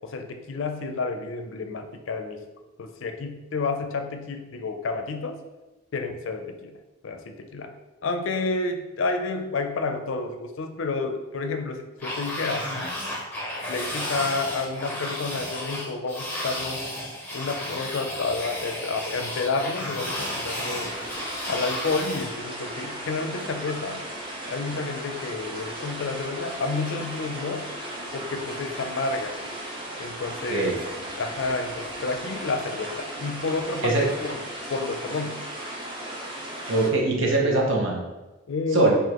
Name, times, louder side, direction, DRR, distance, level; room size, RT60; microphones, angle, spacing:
voice 1, 0.0-2.4 2.8-5.4 5.9-6.8 7.0-7.7 8.0-12.9 13.7-16.8 17.3-20.9 21.5-24.0 24.5-27.7 28.1-29.4 30.0-30.8 31.2-34.4 34.7-35.4 38.5-39.0, left 3 dB, 80° left, 6 dB, 0.4 m, -30 dB
sound 1, 12.0-22.3, left 1 dB, 10° left, 0.8 m, -33 dB
sound 2, 20.0-36.9, right 1 dB, 25° right, 0.7 m, -36 dB
voice 2, 30.5-30.8 33.8-34.0 36.7-38.0 38.7-39.0, right 2 dB, 75° right, -1 dB, 0.8 m, -22 dB
4.8 x 2.5 x 2.9 m, 1.1 s
head